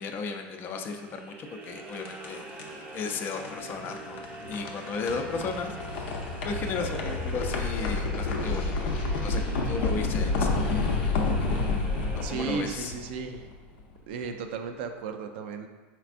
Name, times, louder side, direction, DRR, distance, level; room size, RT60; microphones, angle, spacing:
voice 1, 0.0-2.5 2.9-6.1 6.4-11.0 12.1-12.9, left 4 dB, 35° left, 5 dB, 0.4 m, -35 dB
Throat Singing in a Cave, 1.0-13.2, right 3 dB, 25° right, 0.5 m, -44 dB
sound 1, 1.6-13.7, left 3 dB, 85° left, 0.6 m, -30 dB
voice 2, 12.2-13.5 14.1-15.7, right 5 dB, 80° right, 6 dB, 0.4 m, -34 dB
4.4 x 3.3 x 2.5 m, 1.3 s
supercardioid pair, 130°, 6 cm